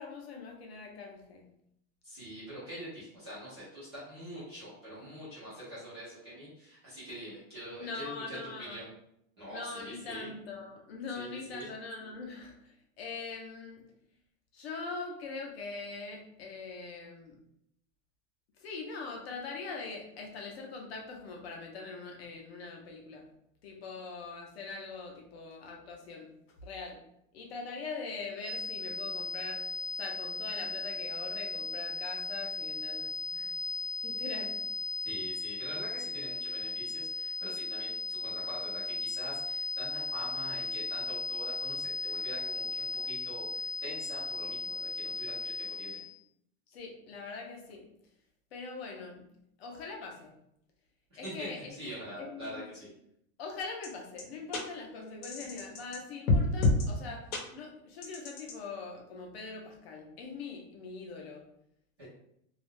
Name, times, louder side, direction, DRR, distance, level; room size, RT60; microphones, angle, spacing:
voice 1, 0.0-1.5 7.8-8.8 9.5-13.8 14.5-17.4 18.6-23.2 23.6-26.3 26.6-27.0 27.3-29.6 30.0-33.5 34.0-34.5 46.7-47.8 48.5-49.2 49.6-50.3 51.2-51.7 52.3-52.7 53.4-57.3 57.5-61.4, left 4 dB, 45° left, 1 dB, 0.5 m, -42 dB
voice 2, 2.0-8.9 9.4-10.3 11.1-11.7 35.0-46.0 51.1-52.9 62.0-62.1, equal, 20° right, -11 dB, 0.3 m, -44 dB
sound 1, 28.4-46.1, left 2 dB, 65° right, 0.8 m, -36 dB
sound 2, 53.8-53.9 54.2-54.3 54.5-54.6 55.2-56.0 56.3-56.9 57.3-57.4 58.0-58.5, left 3 dB, 90° left, 0.8 m, -27 dB
2.3 x 2.1 x 3.0 m, 0.75 s
supercardioid pair, 175°, 42 cm